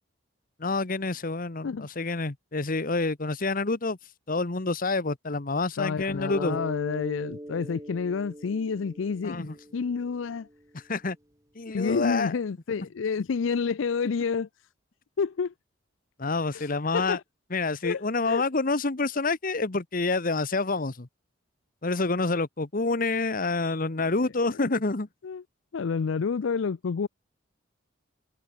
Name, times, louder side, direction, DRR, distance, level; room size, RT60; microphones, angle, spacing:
voice 1, 0.6-4.0 4.3-6.6 9.2-9.5 10.7-11.2 11.5-12.3 16.2-17.2 17.5-21.1 21.8-25.1, left 3 dB, 45° left, 1.1 m, -28 dB
voice 2, 5.8-10.5 11.7-14.5 15.2-15.5 16.5-17.2 17.8-18.4 24.6-24.7 25.2-25.4 25.7-27.1, left 5 dB, 75° left, 0.5 m, -29 dB
Mallet percussion, 6.2-10.7, equal, 15° right, 4.1 m, -41 dB
head